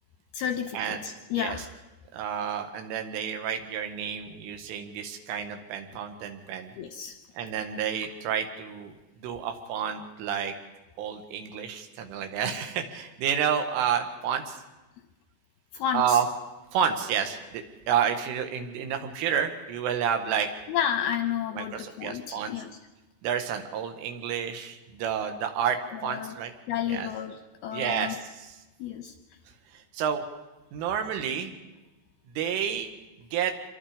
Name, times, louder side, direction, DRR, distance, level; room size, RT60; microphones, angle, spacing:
voice 1, 0.3-1.7 6.8-7.2 15.7-16.2 20.7-22.7 25.9-26.4 26.7-28.2 28.8-29.1, left 9 dB, 80° left, 7 dB, 2.3 m, -31 dB
voice 2, 1.4-1.7 2.1-6.7 7.4-10.5 11.0-14.6 15.9-16.3 16.7-20.5 21.5-22.5 23.2-26.5 26.9-27.1 27.7-28.6 29.7-30.2 30.7-31.6 32.4-32.9 33.2-33.5, right 8 dB, 85° right, 6 dB, 4.2 m, -30 dB
26.0 x 23.0 x 5.1 m, 1.1 s
omnidirectional pair, 5.5 m